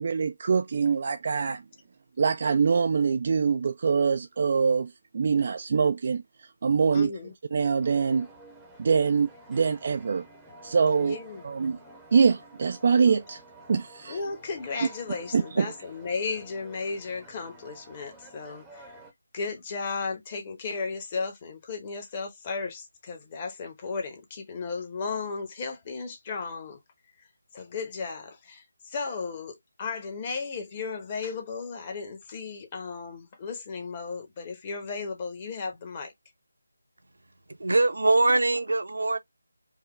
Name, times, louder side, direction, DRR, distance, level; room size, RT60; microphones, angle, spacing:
voice 1, 0.0-1.6 2.2-7.1 7.5-8.3 8.8-10.2 10.6-11.2 11.4-11.8 12.1-13.4 13.7-14.2 15.3-15.7, right 5 dB, 40° right, 0.4 m, -24 dB
voice 2, 6.9-7.3 11.0-11.4 14.1-19.0 19.3-26.8 27.5-36.1, left 4 dB, 25° left, 1.0 m, -35 dB
sound 1, 7.8-19.1, right 1 dB, 5° right, 0.8 m, -51 dB
voice 3, 37.6-39.2, right 2 dB, 65° right, 0.8 m, -22 dB
4.8 x 2.1 x 3.1 m
figure-of-eight pair, 160°, 0 cm